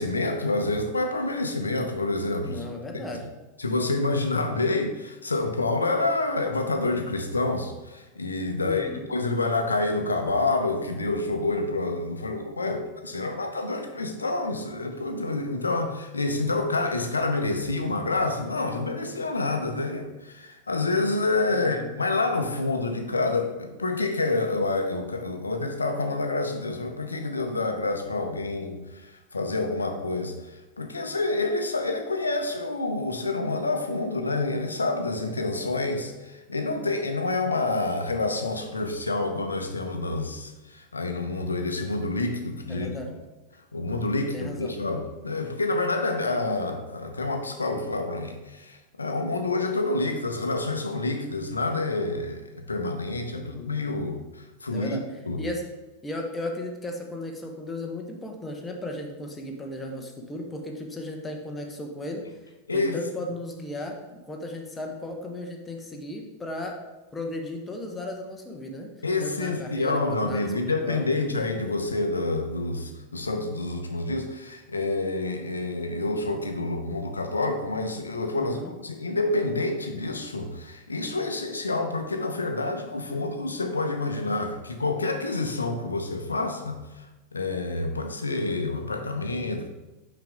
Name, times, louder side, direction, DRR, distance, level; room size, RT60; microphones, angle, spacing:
voice 1, 0.0-2.6 2.9-3.0 3.6-43.0 43.7-55.0 55.3-55.4 62.7-63.0 69.0-78.6 78.8-86.8 87.3-89.7, left 2 dB, 75° left, 5 dB, 0.7 m, -28 dB
voice 2, 2.4-3.3 8.6-9.1 21.5-21.9 42.7-43.1 44.3-44.7 53.3-53.8 54.7-55.1 55.4-55.7 56.0-62.3 62.7-66.8 67.1-68.9 69.2-71.3 78.4-78.7, left 1 dB, 15° left, 2 dB, 1.0 m, -35 dB
5.8 x 5.1 x 3.5 m, 1.1 s
figure-of-eight pair, 90°, 0 cm